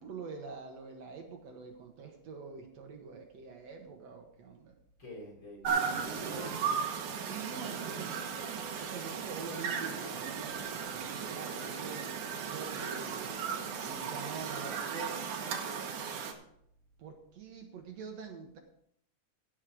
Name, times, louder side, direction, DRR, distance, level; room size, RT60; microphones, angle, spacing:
voice 1, 0.0-4.7 7.2-13.4 13.8-16.0 17.0-18.6, right 5 dB, 65° right, 3 dB, 2.2 m, -45 dB
voice 2, 5.0-6.6, equal, 40° left, -3 dB, 4.8 m, -47 dB
sound 1, 5.6-16.3, right 6 dB, 90° right, 2.8 m, -36 dB
16.5 x 6.5 x 4.9 m, 0.71 s
omnidirectional pair, 3.5 m